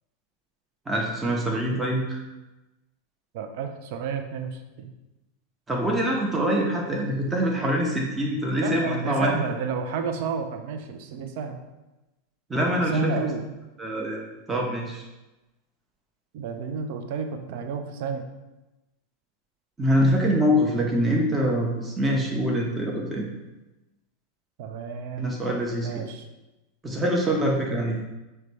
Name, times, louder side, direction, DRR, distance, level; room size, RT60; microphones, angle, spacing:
voice 1, 0.9-2.2 5.7-9.3 12.5-13.1 13.8-14.2 14.5-15.0 19.8-23.3 25.2-26.0 26.8-28.0, equal, 15° right, -1 dB, 0.6 m, -24 dB
voice 2, 3.3-4.9 8.6-11.6 12.8-13.5 16.3-18.2 24.6-26.3, right 5 dB, 55° right, 6 dB, 0.4 m, -31 dB
4.7 x 2.2 x 3.1 m, 1.0 s
figure-of-eight pair, 90°, 0 cm